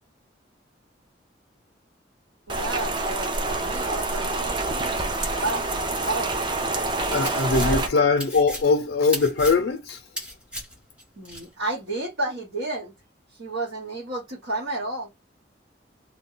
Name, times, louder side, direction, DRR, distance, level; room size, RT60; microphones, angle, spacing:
Rain, 2.5-7.9, right 2 dB, 25° right, 0.4 m, -27 dB
voice 1, 2.5-6.3 7.0-8.0 11.2-12.9 13.3-15.1, right 2 dB, 90° right, 1.1 m, -32 dB
voice 2, 7.1-10.0, left 4 dB, 80° left, 0.5 m, -21 dB
sound 1, 7.3-11.5, equal, 5° right, 0.7 m, -36 dB
2.2 x 2.0 x 3.7 m
head